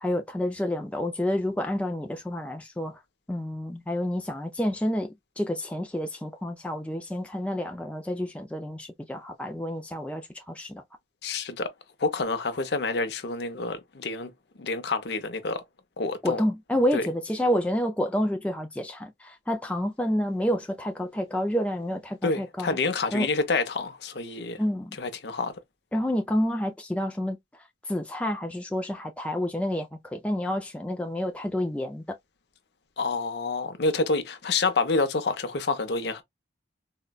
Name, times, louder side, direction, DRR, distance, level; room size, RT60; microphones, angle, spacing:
voice 1, 0.0-3.0 3.3-10.8 16.2-22.8 23.1-23.3 24.6-25.0 25.9-27.4 27.9-32.2, equal, 5° left, 0.4 m, -29 dB
voice 2, 11.2-11.7 12.0-14.3 14.6-15.6 16.0-16.4 16.9-17.0 22.2-24.6 25.0-25.5 33.0-36.2, left 3 dB, 70° left, 0.6 m, -28 dB
3.7 x 2.1 x 2.2 m
head